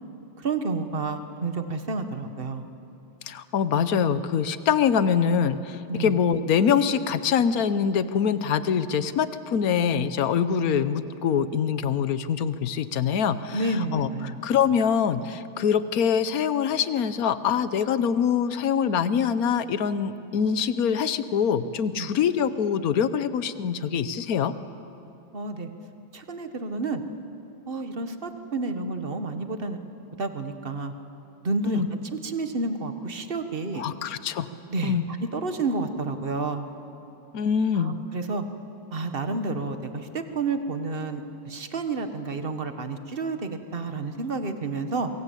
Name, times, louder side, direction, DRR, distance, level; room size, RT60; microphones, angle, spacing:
voice 1, 0.4-2.6 5.9-6.2 13.5-14.4 21.9-22.1 25.3-25.7 26.1-27.0 27.7-29.8 30.2-30.9 31.4-31.8 32.2-33.8 34.7-36.7 37.7-38.4 38.9-45.1, right 3 dB, 30° right, 8 dB, 1.4 m, -30 dB
voice 2, 3.3-14.1 14.4-24.5 31.6-31.9 33.7-34.5 34.8-35.0 37.3-38.0, left 7 dB, 55° left, 13 dB, 1.1 m, -24 dB
26.5 x 23.0 x 8.4 m, 2.7 s
omnidirectional pair, 2.3 m